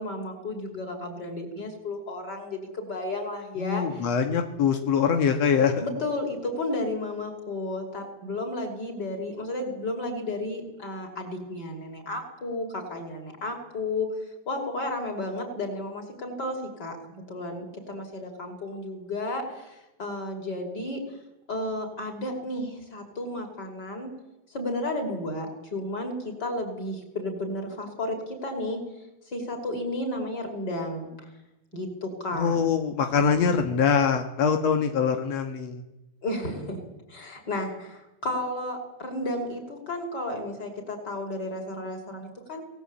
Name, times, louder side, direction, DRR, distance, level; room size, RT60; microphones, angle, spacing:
voice 1, 0.0-4.1 5.8-14.1 14.5-21.0 21.5-24.1 24.5-28.8 29.3-31.1 31.7-32.6 33.6-33.7 36.2-36.8 37.1-42.6, left 1 dB, 20° left, 3 dB, 5.5 m, -33 dB
voice 2, 3.6-5.7 32.3-35.8, left 6 dB, 70° left, 6 dB, 1.6 m, -23 dB
29.0 x 19.0 x 8.7 m, 0.97 s
omnidirectional pair, 5.3 m